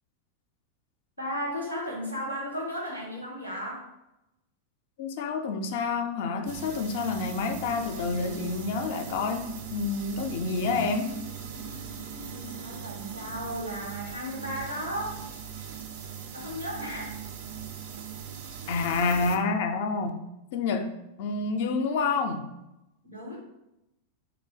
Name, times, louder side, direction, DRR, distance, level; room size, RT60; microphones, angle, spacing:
voice 1, 1.2-3.8 12.3-15.2 16.3-17.1 23.0-23.4, equal, 90° right, -3 dB, 1.5 m, -35 dB
voice 2, 5.0-11.1 18.7-20.2 20.5-20.9 21.2-22.4, left 4 dB, 50° left, 7 dB, 0.4 m, -28 dB
sound 1, 6.5-19.4, right 7 dB, 50° right, 0.4 m, -40 dB
3.2 x 2.7 x 4.3 m, 0.90 s
figure-of-eight pair, 90°, 0 cm